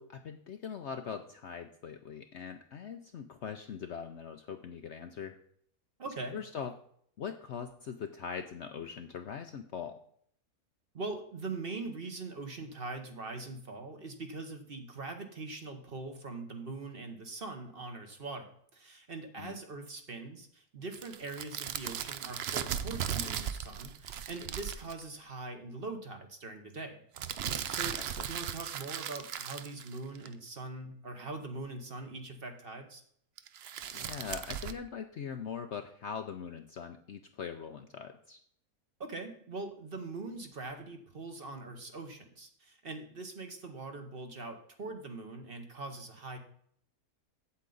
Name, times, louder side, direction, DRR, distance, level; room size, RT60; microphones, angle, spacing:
voice 1, 0.0-5.4 6.3-6.7 7.2-10.0 19.4-19.5 28.0-28.3 33.9-38.4, left 7 dB, 60° left, 7 dB, 0.8 m, -41 dB
voice 2, 6.0-6.4 10.9-27.0 27.7-33.0 39.0-46.4, right 3 dB, 40° right, 5 dB, 1.1 m, -42 dB
sound 1, 20.9-25.0 27.2-30.3 33.4-34.7, right 9 dB, 65° right, 0.6 m, -37 dB
8.4 x 8.0 x 3.9 m, 0.64 s
omnidirectional pair, 1.6 m